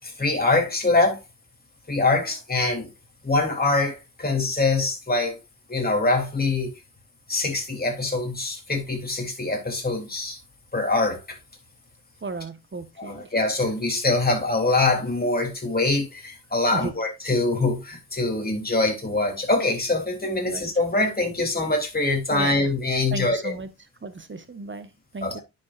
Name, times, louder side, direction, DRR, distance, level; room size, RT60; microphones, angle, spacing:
voice 1, 0.0-1.2 1.9-2.9 3.2-5.4 5.7-6.7 7.3-10.4 10.7-11.4 13.0-23.5 25.2-25.4, left 2 dB, 25° left, 3.5 m, -24 dB
voice 2, 12.2-13.3 16.7-16.9 20.5-20.7 22.3-22.7 23.1-25.4, right 3 dB, 30° right, 1.5 m, -35 dB
9.8 x 6.4 x 2.6 m
supercardioid pair, 40°, 37 cm